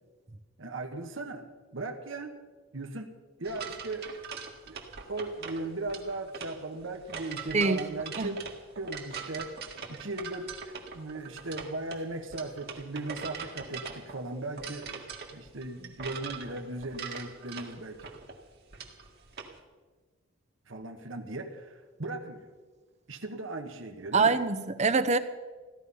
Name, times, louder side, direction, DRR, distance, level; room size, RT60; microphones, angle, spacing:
voice 1, 0.6-1.5 1.7-2.3 2.7-3.1 3.4-4.1 4.7-4.8 5.1-8.4 8.8-9.6 9.9-15.0 15.3-18.1 20.7-22.5 23.1-24.4, right 2 dB, 70° right, 4 dB, 1.3 m, -37 dB
sound 1, 3.4-19.5, right 6 dB, 50° right, 1.9 m, -42 dB
voice 2, 24.1-25.2, right 4 dB, 35° right, 11 dB, 0.7 m, -24 dB
16.0 x 13.0 x 5.6 m, 1.4 s
head